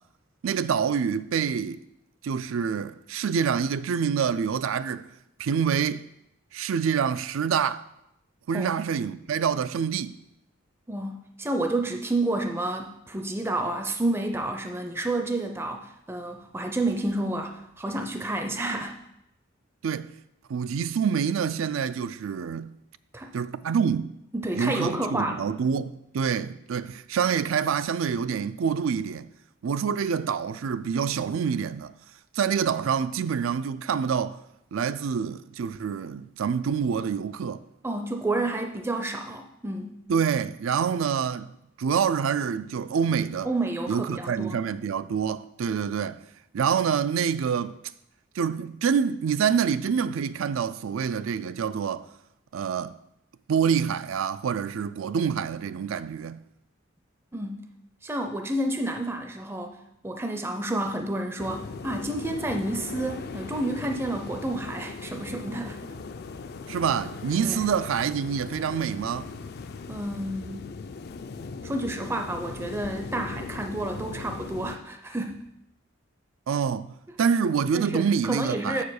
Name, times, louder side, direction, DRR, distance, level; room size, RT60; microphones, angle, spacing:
voice 1, 0.4-1.8 2.2-5.1 5.4-6.0 6.5-7.8 8.5-10.2 19.8-20.1 20.5-22.7 23.3-24.1 24.5-29.3 29.6-31.9 32.3-34.4 34.7-37.6 40.1-41.5 41.8-43.5 43.9-46.2 46.5-47.7 48.4-52.1 52.5-53.0 53.5-56.4 66.7-69.3 76.5-76.9 77.2-78.8, right 7 dB, 75° right, 0.4 m, -26 dB
voice 2, 10.9-19.0 23.1-23.3 24.3-25.5 37.8-40.0 43.5-44.6 57.3-57.6 58.0-59.8 60.0-65.8 67.4-67.6 69.9-70.7 71.6-75.4 77.7-78.8, right 2 dB, 10° right, 0.4 m, -30 dB
sound 1, 61.4-74.8, left 4 dB, 50° left, 0.4 m, -39 dB
7.1 x 4.8 x 6.4 m
head